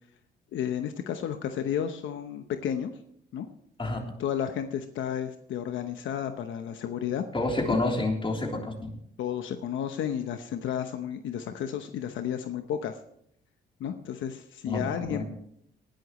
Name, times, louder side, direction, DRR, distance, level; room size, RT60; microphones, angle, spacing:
voice 1, 0.5-2.9 3.3-3.5 4.2-7.2 7.7-7.8 9.2-13.0 13.8-15.2, left 9 dB, 80° left, 7 dB, 0.9 m, -32 dB
voice 2, 7.3-8.9 14.7-15.2, left 2 dB, 25° left, 1 dB, 3.5 m, -29 dB
19.5 x 11.5 x 3.1 m, 0.72 s
cardioid pair, 90°, 20 cm